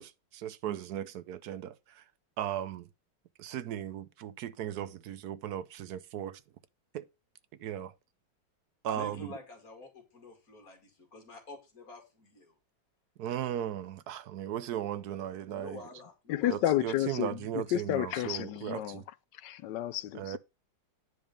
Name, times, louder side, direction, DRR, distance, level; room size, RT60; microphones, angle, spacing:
voice 1, 0.0-2.0 2.4-2.9 3.4-6.4 6.9-7.1 7.6-7.9 8.8-9.3 13.2-15.8 16.5-19.0 20.1-20.4, right 10 dB, 65° right, 1.1 m, -37 dB
voice 2, 8.9-12.5 15.5-16.6, left 2 dB, 50° left, 2.9 m, -48 dB
voice 3, 16.3-19.0 19.3-20.4, left 13 dB, 75° left, 1.2 m, -31 dB
9.8 x 5.1 x 5.2 m
omnidirectional pair, 2.0 m